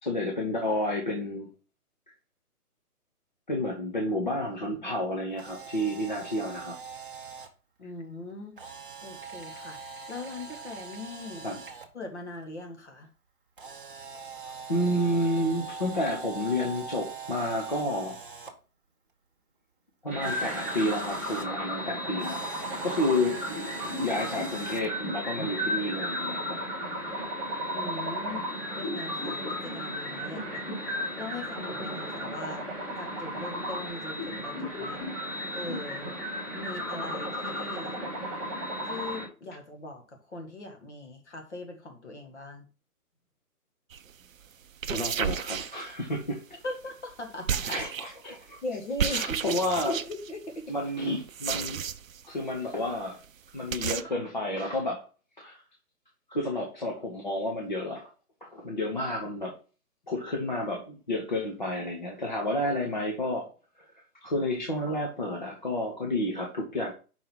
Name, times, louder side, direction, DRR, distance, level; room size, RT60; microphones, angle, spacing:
voice 1, 0.0-1.5 3.5-6.7 11.4-11.6 14.7-18.2 20.0-22.4 22.8-23.4 24.0-26.6 44.9-46.4 47.6-48.6 49.0-49.9 50.7-51.8 52.3-53.2 53.5-55.0 55.4-55.6 56.3-58.0 58.4-59.5 60.1-63.5 64.2-66.9, left 1 dB, 30° left, 0 dB, 0.8 m, -30 dB
Camera, 5.3-7.5 8.6-11.9 13.6-18.5 20.2-21.5 22.2-24.9, right 5 dB, 35° right, 0.9 m, -42 dB
voice 2, 7.8-8.6 9.0-9.8 10.1-11.5 11.9-13.1 27.7-28.4 28.8-30.6 31.1-32.7 33.0-35.0 35.5-36.1 36.5-38.0 38.8-42.7 46.6-47.8 48.6-49.4 49.9-50.5, left 2 dB, 45° left, 4 dB, 1.7 m, -40 dB
sound 1, 20.1-39.2, equal, 15° left, 1.4 m, -34 dB
sound 2, 43.9-44.1 44.7-46.3 47.5-48.3 49.0-50.3 51.3-52.2 52.5-52.6 52.9-53.0 53.2-53.3 53.7-54.0, right 8 dB, 60° right, 0.5 m, -32 dB
5.4 x 4.7 x 5.4 m, 0.35 s
hypercardioid pair, 175°, 46 cm